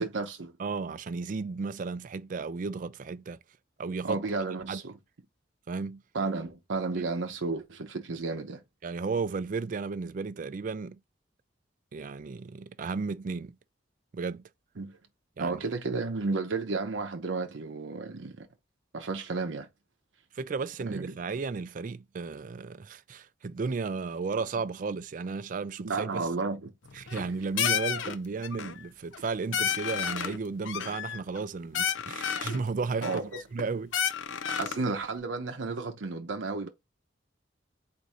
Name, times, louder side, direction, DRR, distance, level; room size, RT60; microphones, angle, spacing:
voice 1, 0.0-0.5 4.0-5.0 6.1-8.6 14.8-15.0 15.4-18.5 18.9-19.7 20.9-21.2 25.8-26.7 33.0-33.4 34.5-36.7, right 3 dB, 80° right, 0.7 m, -32 dB
voice 2, 0.6-3.4 3.8-4.2 4.7-4.8 5.7-6.0 8.8-11.0 11.9-13.6 14.1-14.4 15.4-15.6 20.3-26.2 26.9-33.2 33.5-33.9, right 4 dB, 45° right, 0.4 m, -34 dB
sound 1, 26.9-27.3 27.6-28.1 28.4-28.8 29.1-29.2 29.5-30.4 30.6-31.4 31.7-32.6 33.0-33.6 33.9-34.8, left 8 dB, 90° left, 0.5 m, -31 dB
4.1 x 2.6 x 4.8 m
head